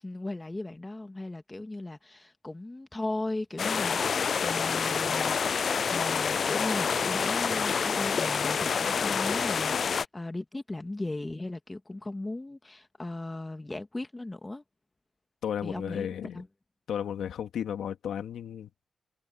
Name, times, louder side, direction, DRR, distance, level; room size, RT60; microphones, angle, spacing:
voice 1, 0.0-5.4 5.9-14.6 15.6-16.1 16.3-16.5, left 2 dB, 25° left, 2.1 m, -37 dB
sound 1, 3.6-10.0, left 6 dB, 60° left, 0.4 m, -27 dB
voice 2, 15.4-16.4 16.9-18.7, left 9 dB, 80° left, 2.4 m, -34 dB
supercardioid pair, 45°, 0 cm